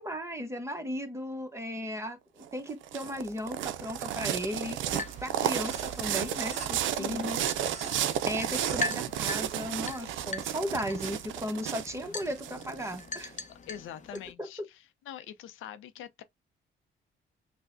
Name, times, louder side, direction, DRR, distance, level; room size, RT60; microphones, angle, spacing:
voice 1, 0.0-7.4 8.3-13.3 14.4-14.5, equal, 15° right, 0.9 m, -36 dB
sound 1, 2.4-13.2, right 11 dB, 80° right, 0.4 m, -33 dB
sound 2, 4.2-10.6, right 3 dB, 35° right, 1.6 m, -48 dB
sound 3, 4.6-14.3, left 3 dB, 40° left, 0.7 m, -42 dB
voice 2, 7.0-7.3 13.5-16.2, left 10 dB, 85° left, 0.6 m, -44 dB
5.9 x 2.2 x 2.5 m
cardioid pair, 90°, 20 cm